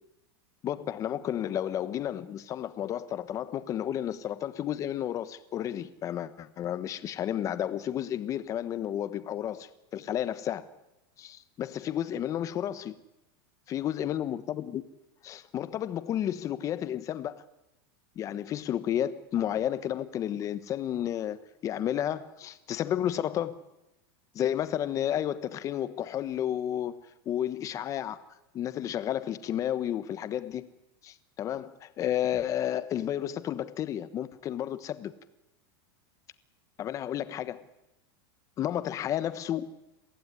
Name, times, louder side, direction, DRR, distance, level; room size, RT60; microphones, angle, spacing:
voice 1, 0.6-10.7 11.2-12.9 13.7-14.8 15.2-17.4 18.1-23.6 24.3-28.2 28.5-30.7 31.0-35.1 36.8-37.6 38.6-39.7, left 11 dB, 25° left, 1.2 m, -32 dB
23.0 x 15.5 x 9.7 m
supercardioid pair, 155°, 12 cm